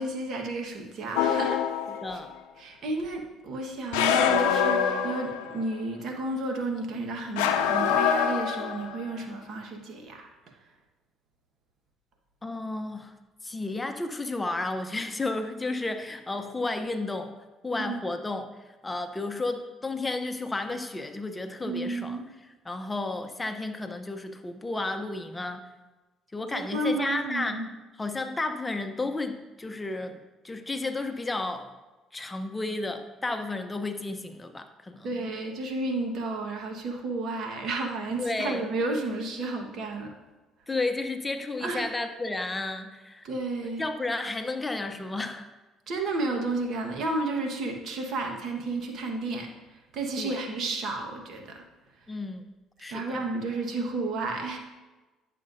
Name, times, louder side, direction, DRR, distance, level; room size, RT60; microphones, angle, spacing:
voice 1, 0.0-1.6 2.1-2.2 2.6-10.3 17.8-18.0 21.6-22.3 26.5-27.7 35.0-40.1 41.6-41.9 43.2-43.9 45.9-51.6 52.9-54.6, right 2 dB, 60° right, 2 dB, 1.4 m, -32 dB
sound 1, 1.2-2.2 3.9-5.7 7.4-9.0, left 7 dB, 85° left, 0.5 m, -25 dB
voice 2, 1.9-2.3 12.4-13.1 13.4-17.3 17.6-18.5 18.8-25.6 26.3-27.6 28.0-30.2 30.4-31.7 32.1-35.1 38.2-38.6 40.7-43.3 43.6-45.5 50.2-50.4 52.1-52.4 52.8-53.2, left 2 dB, 20° left, 7 dB, 0.8 m, -32 dB
10.5 x 6.6 x 2.7 m, 1.2 s
supercardioid pair, 65°, 0 cm